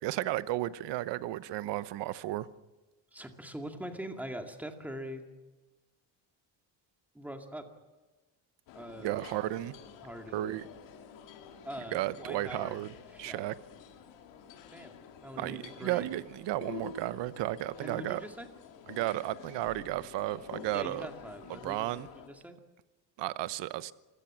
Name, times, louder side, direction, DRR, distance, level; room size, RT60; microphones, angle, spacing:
voice 1, 0.0-2.5 9.0-9.7 10.3-10.7 11.9-13.5 15.4-18.2 18.9-21.1 21.5-22.1 23.2-23.9, right 15 dB, 70° right, 16 dB, 1.0 m, -34 dB
voice 2, 3.1-5.2 7.1-7.7 8.7-9.2 10.0-10.5 11.6-12.8 13.1-13.4 14.7-14.9 15.2-16.1 17.8-18.5 20.7-22.6, equal, 5° right, 4 dB, 2.2 m, -43 dB
sound 1, 8.7-22.3, left 7 dB, 80° left, 2.8 m, -49 dB
26.5 x 16.5 x 7.4 m, 1.2 s
cardioid pair, 155°, 43 cm